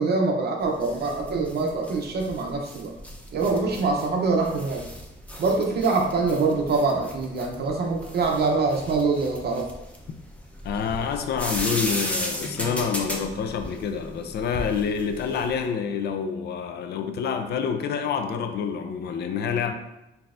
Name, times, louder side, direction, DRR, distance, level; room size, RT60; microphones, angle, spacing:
voice 1, 0.0-2.9 3.3-4.9 5.4-9.6, right 3 dB, 55° right, 1 dB, 0.6 m, -24 dB
sound 1, 0.6-15.6, equal, 5° left, 0.6 m, -35 dB
voice 2, 10.6-19.7, left 6 dB, 55° left, 7 dB, 0.4 m, -27 dB
3.9 x 2.7 x 2.4 m, 0.91 s
cardioid pair, 90°, 20 cm